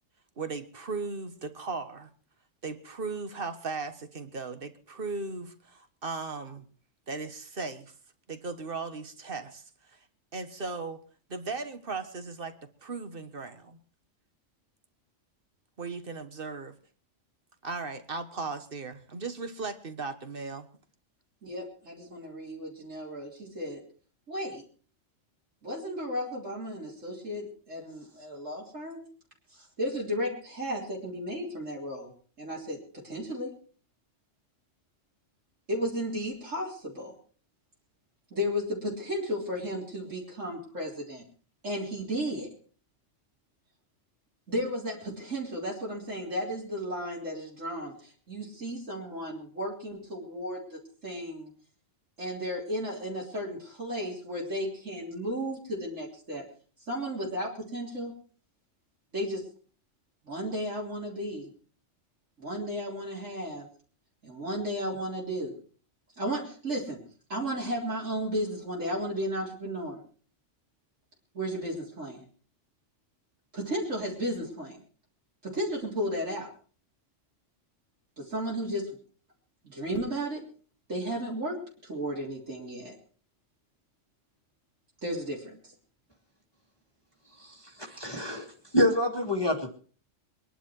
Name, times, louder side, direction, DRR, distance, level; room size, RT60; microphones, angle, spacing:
voice 1, 0.4-2.1 2.6-6.6 7.1-7.9 8.3-10.0 10.3-11.0 11.3-12.5 12.8-13.8 15.8-16.7 17.6-20.7, right 4 dB, 45° right, 9 dB, 1.6 m, -37 dB
voice 2, 21.4-23.8 24.3-24.6 25.6-29.1 29.5-32.1 32.4-33.5 35.7-37.1 38.3-41.2 41.6-42.5 44.5-51.5 52.2-56.4 56.9-58.1 59.1-59.5 60.3-61.5 62.4-63.7 64.2-65.5 66.2-67.0 67.3-70.0 71.3-72.2 73.5-74.8 75.4-76.5 78.2-78.9 79.6-80.4 80.9-83.0 85.0-85.7, equal, 75° right, -4 dB, 4.1 m, -34 dB
voice 3, 87.3-89.7, left 1 dB, 20° left, 2 dB, 1.9 m, -28 dB
23.0 x 11.0 x 4.6 m, 0.42 s
omnidirectional pair, 1.3 m